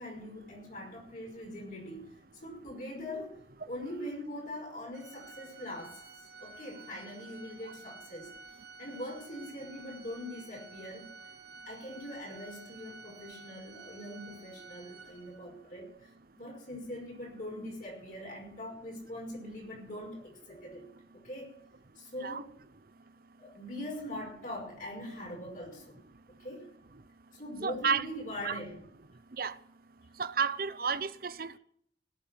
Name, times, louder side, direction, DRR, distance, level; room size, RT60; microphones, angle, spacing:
voice 1, 0.0-2.1 2.4-6.0 6.4-8.3 8.8-11.2 11.7-20.9 21.1-21.5 22.0-22.5 23.4-26.0 26.3-26.7 27.3-28.9, left 1 dB, 45° left, 5.5 m, -42 dB
Organ, 4.9-15.6, right 4 dB, 85° right, 2.7 m, -51 dB
voice 2, 27.6-28.1 28.4-28.6 29.4-29.5 30.2-31.6, right 6 dB, 50° right, 0.7 m, -31 dB
17.5 x 7.3 x 8.7 m
head